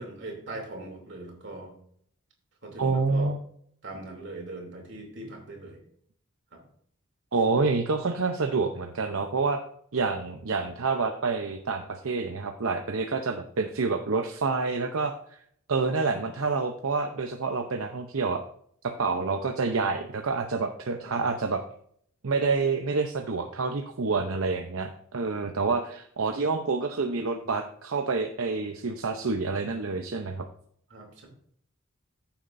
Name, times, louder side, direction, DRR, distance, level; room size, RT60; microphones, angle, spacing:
voice 1, 0.0-1.7 2.6-3.3 3.8-5.8 6.5-6.6 21.0-21.2 30.9-31.3, right 2 dB, 55° right, 1 dB, 2.9 m, -40 dB
voice 2, 2.8-3.4 7.3-9.6 9.9-15.4 15.7-18.4 18.8-21.6 22.2-30.5, right 4 dB, 75° right, 5 dB, 0.7 m, -28 dB
14.5 x 7.2 x 2.6 m, 0.64 s
head